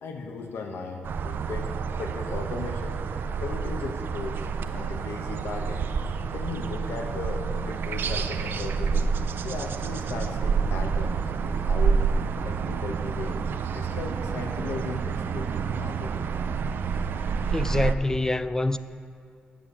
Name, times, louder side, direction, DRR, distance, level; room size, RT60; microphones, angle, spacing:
voice 1, 0.0-5.9 6.3-9.1 9.4-12.0 12.4-13.4 13.7-16.3, left 4 dB, 85° left, 0.9 m, -37 dB
sound 1, 1.0-17.9, right 5 dB, 70° right, 0.4 m, -28 dB
voice 2, 17.5-18.8, left 2 dB, 15° left, 0.3 m, -25 dB
9.1 x 6.8 x 7.1 m
cardioid pair, 95°, 4 cm